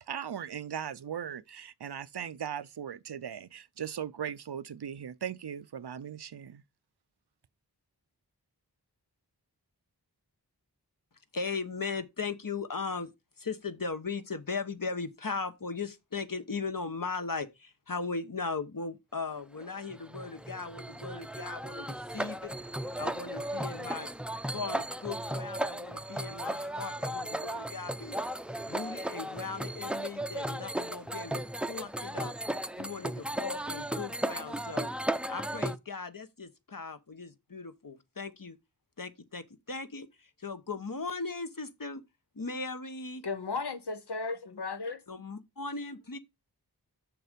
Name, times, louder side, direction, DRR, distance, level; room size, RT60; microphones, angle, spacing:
voice 1, 0.0-6.6, right 8 dB, 80° right, 0.6 m, -38 dB
voice 2, 11.3-22.5 23.0-24.1 24.5-28.2 28.7-32.3 32.8-34.9 35.3-38.6 39.0-42.0 42.3-43.2 45.1-46.2, left 4 dB, 55° left, 1.1 m, -38 dB
sound 1, 19.6-35.8, right 1 dB, 5° right, 0.5 m, -36 dB
voice 3, 43.2-45.0, left 4 dB, 80° left, 0.9 m, -35 dB
6.8 x 6.7 x 5.1 m
wide cardioid pair, 45°, 39 cm